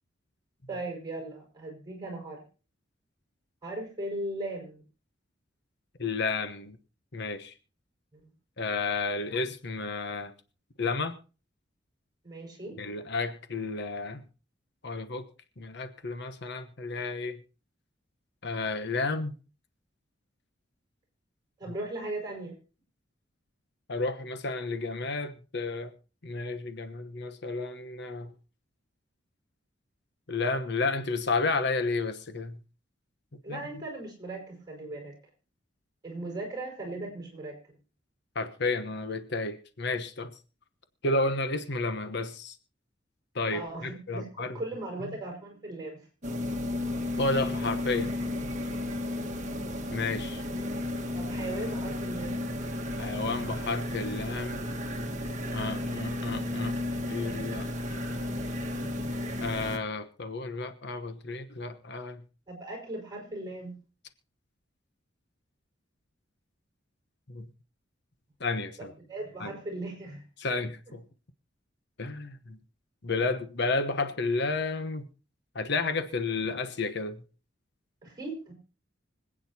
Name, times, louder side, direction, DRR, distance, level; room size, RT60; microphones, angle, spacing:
voice 1, 0.7-2.4 3.6-4.8 8.1-8.3 12.2-12.8 21.6-22.5 33.4-35.2 36.0-37.8 43.5-46.1 49.2-49.5 51.1-52.4 62.5-63.8 68.8-70.2 78.0-78.5, right 2 dB, 20° right, 2 dB, 5.5 m, -38 dB
voice 2, 6.0-6.8 7.1-7.5 8.6-10.3 10.8-11.2 12.8-14.2 14.8-15.3 15.6-17.4 18.4-19.3 23.9-25.9 26.2-28.3 30.3-32.6 33.5-33.6 38.3-40.3 41.0-42.6 43.3-44.6 45.0-45.2 47.2-48.2 49.9-50.4 53.0-54.7 55.5-57.7 59.4-62.2 67.3-67.5 68.4-68.9 69.4-69.5 70.4-71.0 72.0-72.6 73.0-75.1 75.5-77.2, left 3 dB, 60° left, 9 dB, 1.1 m, -32 dB
sound 1, 46.2-59.8, left 1 dB, 40° right, 1.6 m, -33 dB
25.5 x 8.9 x 2.9 m, 0.35 s
head